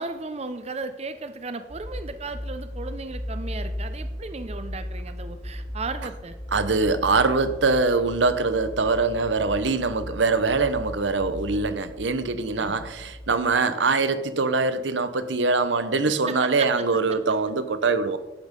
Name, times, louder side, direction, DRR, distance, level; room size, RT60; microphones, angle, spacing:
voice 1, 0.0-6.4 12.6-12.8 16.1-16.7, right 3 dB, 35° right, 0.6 m, -35 dB
sound 1, 1.7-13.4, left 1 dB, 15° left, 1.7 m, -36 dB
voice 2, 6.5-18.2, right 3 dB, 80° right, 0.9 m, -23 dB
11.5 x 8.3 x 5.3 m
head